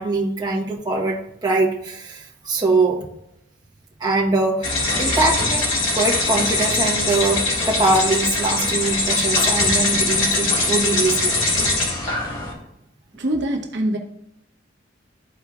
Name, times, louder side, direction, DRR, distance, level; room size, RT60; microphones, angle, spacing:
voice 1, 0.0-3.1 4.0-4.7 5.0-5.7 5.9-11.4 12.3-12.4, right 2 dB, 20° right, -3 dB, 1.0 m, -22 dB
sound 1, 4.6-12.5, left 2 dB, 70° left, 2.1 m, -21 dB
voice 2, 13.2-14.0, right 1 dB, 60° right, 2 dB, 0.9 m, -23 dB
13.0 x 4.5 x 2.4 m, 0.78 s
head